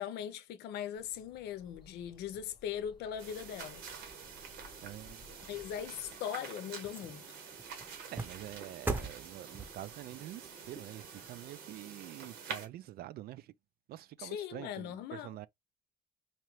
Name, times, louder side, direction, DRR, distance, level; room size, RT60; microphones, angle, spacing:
voice 1, 0.0-3.8 5.5-7.4 14.2-15.3, left 9 dB, 80° left, 0.7 m, -40 dB
sound 1, 0.9-6.2, left 4 dB, 25° left, 1.0 m, -60 dB
sound 2, 3.2-12.7, right 6 dB, 80° right, 1.3 m, -47 dB
voice 2, 4.8-5.3 8.1-13.5 13.9-15.5, right 14 dB, 65° right, 0.4 m, -46 dB
sound 3, 6.0-12.4 12.8-12.9, right 3 dB, 10° right, 0.8 m, -44 dB
4.3 x 2.4 x 3.1 m
cardioid pair, 110°, 17 cm